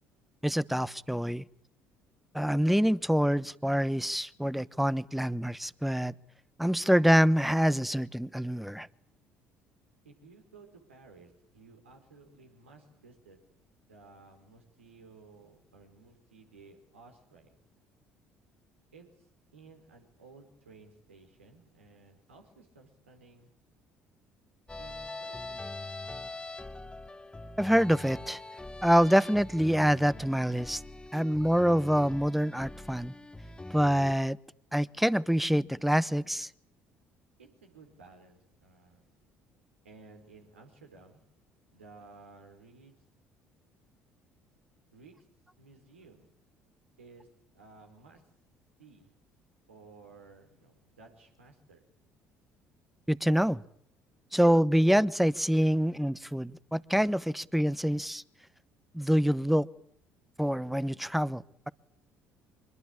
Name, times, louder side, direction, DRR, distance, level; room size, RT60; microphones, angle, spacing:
voice 1, 0.4-1.4 2.3-6.1 6.6-8.9 27.6-28.4 28.8-30.8 31.1-33.1 33.7-34.4 34.7-36.5 53.1-53.6 54.3-58.2 58.9-59.7 60.4-61.7, equal, ahead, 1.0 m, -26 dB
voice 2, 10.0-13.4 13.9-17.6 18.9-23.5 24.8-26.1 37.4-39.0 39.8-41.2 41.7-42.9 44.9-45.1 45.6-46.3 47.0-47.3 47.5-48.2 48.8-49.1 49.7-51.8, right 4 dB, 90° right, 4.2 m, -55 dB
sound 1, 24.7-34.1, left 2 dB, 15° left, 1.5 m, -43 dB
25.0 x 22.0 x 8.7 m
hypercardioid pair, 55°, 6 cm